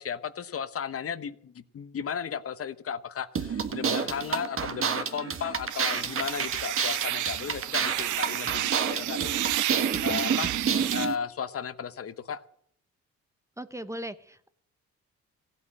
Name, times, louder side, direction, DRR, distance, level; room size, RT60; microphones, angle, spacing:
voice 1, 0.0-10.5 10.9-12.4, left 7 dB, 50° left, 13 dB, 1.0 m, -35 dB
sound 1, 3.3-11.1, right 6 dB, 45° right, 1.6 m, -29 dB
sound 2, 5.7-11.1, right 14 dB, 80° right, 0.7 m, -31 dB
voice 2, 13.6-14.5, equal, 10° right, 12 dB, 0.8 m, -38 dB
16.0 x 8.6 x 7.7 m, 0.65 s
cardioid pair, 90°, 30 cm